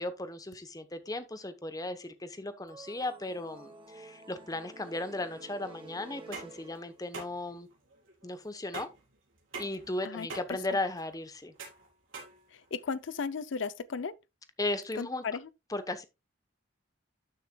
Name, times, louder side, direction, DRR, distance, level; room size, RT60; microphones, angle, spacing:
voice 1, 0.0-7.7 8.2-8.9 9.6-11.5 14.6-15.3 15.7-16.0, left 2 dB, 20° left, 0.9 m, -36 dB
sound 1, 2.7-7.3, right 2 dB, 25° right, 1.2 m, -51 dB
sound 2, 6.1-13.0, right 3 dB, 85° right, 4.2 m, -46 dB
voice 2, 12.7-14.1 15.0-15.4, left 5 dB, 70° left, 0.5 m, -35 dB
12.5 x 6.6 x 2.3 m
head